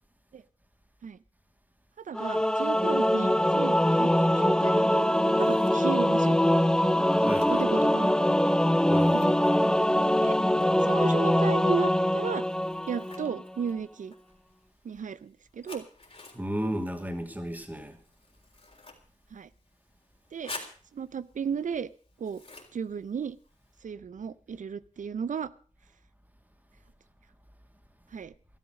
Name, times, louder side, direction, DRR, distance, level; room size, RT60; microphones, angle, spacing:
voice 1, 2.0-6.4 7.5-8.1 9.1-9.3 10.2-10.4 10.8-12.4 12.9-14.1 14.8-15.8 19.3-19.5 20.3-20.5 20.9-21.9 22.2-22.4 22.7-23.4 23.8-25.5 28.1-28.3, right 6 dB, 90° right, 0.6 m, -34 dB
Singing / Musical instrument, 2.1-13.4, left 1 dB, 5° left, 0.6 m, -23 dB
Scissors, 5.0-23.8, left 3 dB, 50° left, 3.6 m, -52 dB
voice 2, 7.2-7.8 8.9-9.3 16.3-18.0, equal, 15° right, 2.5 m, -33 dB
13.0 x 12.5 x 6.4 m
wide cardioid pair, 65°, 13 cm